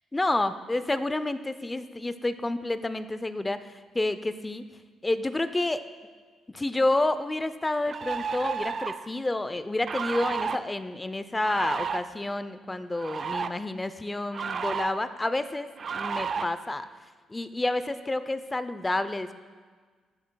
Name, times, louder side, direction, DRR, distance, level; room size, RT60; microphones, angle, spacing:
voice 1, 0.1-3.6 3.9-4.6 5.0-5.8 6.5-16.9 17.3-19.3, left 2 dB, 15° left, 12 dB, 0.5 m, -29 dB
sound 1, 7.0-7.1 7.8-9.1 9.9-10.6 11.4-12.0 12.9-13.5 14.3-14.9 15.8-16.4, right 6 dB, 45° right, 0.4 m, -32 dB
13.5 x 10.0 x 2.3 m, 1.5 s
cardioid pair, 90°, 0 cm